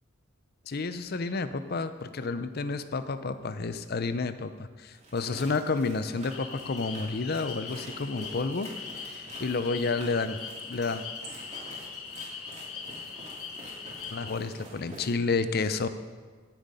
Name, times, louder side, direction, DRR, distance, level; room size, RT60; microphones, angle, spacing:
voice 1, 0.7-8.7 9.0-10.4 10.7-11.0 14.1-15.9, left 4 dB, 45° left, 11 dB, 0.6 m, -30 dB
sound 1, 4.9-15.1, right 1 dB, 35° right, 2.8 m, -47 dB
sound 2, 6.3-14.3, left 6 dB, 80° left, 1.2 m, -41 dB
16.5 x 7.6 x 5.5 m, 1.5 s
head